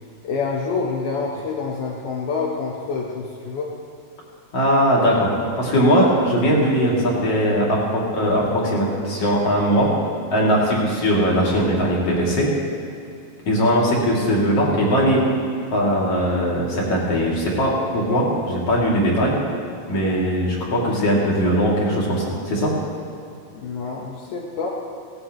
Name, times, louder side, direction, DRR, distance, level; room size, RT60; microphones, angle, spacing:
voice 1, 0.2-3.7 23.5-24.7, left 4 dB, 70° left, -3 dB, 1.9 m, -27 dB
voice 2, 4.5-5.3 5.6-9.9 10.3-12.5 13.5-15.2 15.7-19.3 19.9-22.7, equal, 40° left, -4 dB, 3.1 m, -20 dB
18.0 x 17.0 x 3.1 m, 2.5 s
omnidirectional pair, 5.1 m